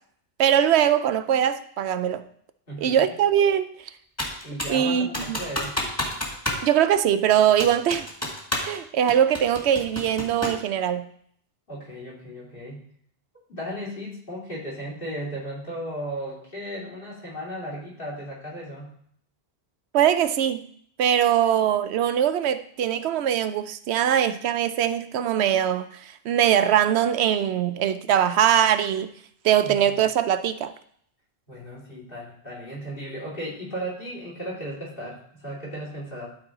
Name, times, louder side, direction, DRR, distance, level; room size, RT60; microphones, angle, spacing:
voice 1, 0.4-2.2 2.8-3.9 4.7-5.4 6.6-8.1 8.6-11.1 19.9-20.7 21.0-29.1 29.4-30.7, right 9 dB, 85° right, 0.9 m, -22 dB
voice 2, 2.7-3.1 4.4-5.8 11.7-12.8 13.5-19.0 29.6-30.0 31.5-36.3, equal, 55° left, 3.2 m, -35 dB
Computer keyboard, 4.2-4.8 5.1-6.7 6.9-7.0 7.6-8.8 9.1-10.7, left 1 dB, 15° left, 1.6 m, -29 dB
12.0 x 4.5 x 3.8 m
omnidirectional pair, 1.1 m